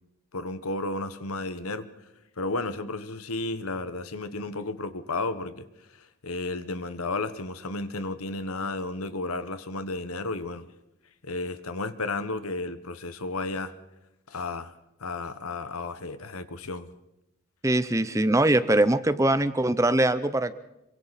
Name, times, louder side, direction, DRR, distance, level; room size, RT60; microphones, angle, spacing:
voice 1, 0.3-1.9 2.4-5.7 5.9-10.7 11.2-13.7 14.3-14.7 15.0-16.9, left 2 dB, 85° left, 12 dB, 1.3 m, -33 dB
voice 2, 17.6-20.5, right 1 dB, 15° right, 13 dB, 0.6 m, -22 dB
27.0 x 23.5 x 4.2 m, 0.87 s
head